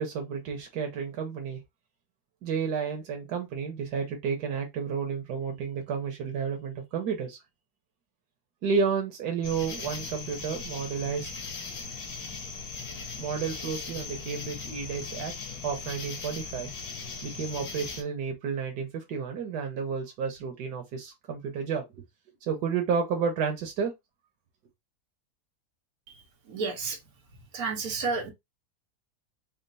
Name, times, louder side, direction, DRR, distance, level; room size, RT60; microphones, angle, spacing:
voice 1, 0.0-1.6 2.4-7.4 8.6-11.3 13.2-15.3 15.6-16.7 17.2-22.0 22.5-23.9, right 6 dB, 85° right, 1.5 m, -31 dB
sound 1, 9.4-18.0, left 4 dB, 70° left, 1.4 m, -39 dB
voice 2, 26.5-27.0 27.5-28.3, right 4 dB, 65° right, 1.6 m, -30 dB
4.3 x 2.0 x 3.9 m
omnidirectional pair, 1.7 m